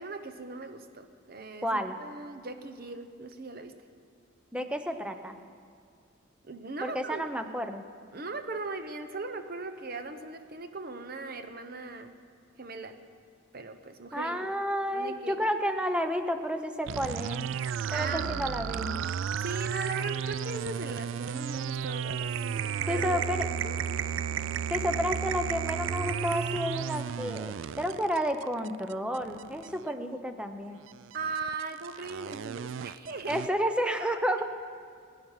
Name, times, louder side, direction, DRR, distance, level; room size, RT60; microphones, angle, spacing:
voice 1, 0.0-3.7 6.4-7.2 8.1-12.1 12.6-13.0 13.5-14.5 14.9-15.4 17.9-18.5 19.4-24.1 31.1-33.4, right 3 dB, 45° right, 8 dB, 1.0 m, -39 dB
voice 2, 1.6-2.0 4.5-5.4 6.8-7.8 14.1-17.4 17.9-19.0 22.9-23.4 24.7-30.8 33.3-34.4, equal, 5° right, 7 dB, 0.7 m, -31 dB
sound 1, 16.9-29.9 30.8-33.5, right 8 dB, 65° right, 0.3 m, -33 dB
21.5 x 9.2 x 5.7 m, 2.2 s
head